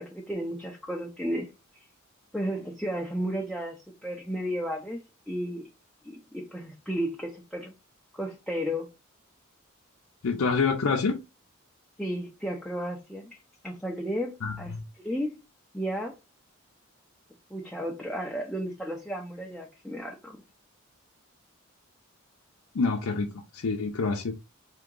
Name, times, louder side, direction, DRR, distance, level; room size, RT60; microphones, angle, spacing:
voice 1, 0.0-1.5 2.3-3.8 4.0-5.0 5.3-5.6 6.0-7.7 8.1-8.9 12.0-13.3 13.6-15.3 15.7-16.1 17.5-20.4, equal, 5° left, 0.5 m, -33 dB
voice 2, 10.2-11.2 14.4-14.6 22.7-23.3 23.5-24.3, left 4 dB, 85° left, 0.6 m, -26 dB
3.6 x 2.9 x 3.7 m
head